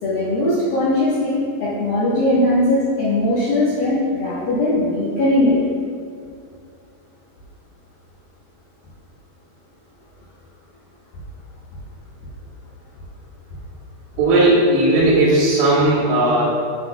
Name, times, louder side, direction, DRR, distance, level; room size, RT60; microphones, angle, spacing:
voice 1, 0.0-5.5, left 1 dB, 65° left, -10 dB, 2.4 m, -19 dB
voice 2, 14.2-16.4, right 2 dB, 80° right, -10 dB, 3.8 m, -16 dB
12.0 x 6.6 x 2.3 m, 2.3 s
omnidirectional pair, 5.5 m